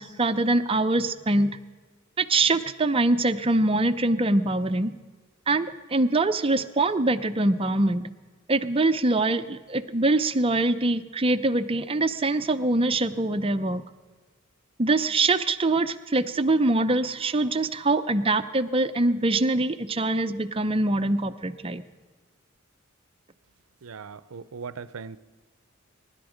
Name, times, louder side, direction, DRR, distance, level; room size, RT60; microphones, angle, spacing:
voice 1, 0.0-1.5 2.2-4.9 5.5-8.1 8.5-13.8 14.8-21.8, right 2 dB, 25° right, 0.6 m, -24 dB
voice 2, 23.8-25.2, right 5 dB, 85° right, 0.6 m, -39 dB
22.5 x 11.5 x 5.1 m
head